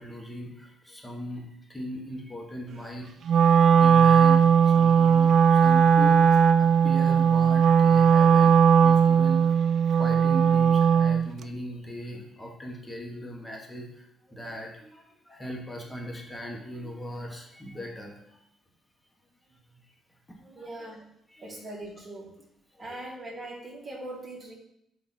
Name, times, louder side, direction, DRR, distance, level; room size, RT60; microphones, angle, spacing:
voice 1, 0.0-1.4 1.7-3.4 3.7-9.5 10.0-13.9 14.3-18.1 20.4-20.8 21.3-21.5, equal, 10° left, 0 dB, 1.5 m, -38 dB
Wind instrument woodwind instrument, 3.3-11.3, right 7 dB, 65° right, 0.3 m, -18 dB
voice 2, 20.5-21.1 21.4-22.3 22.8-24.5, right 1 dB, 30° right, -4 dB, 2.2 m, -40 dB
7.9 x 3.0 x 4.2 m, 0.74 s
cardioid pair, 90°, 0 cm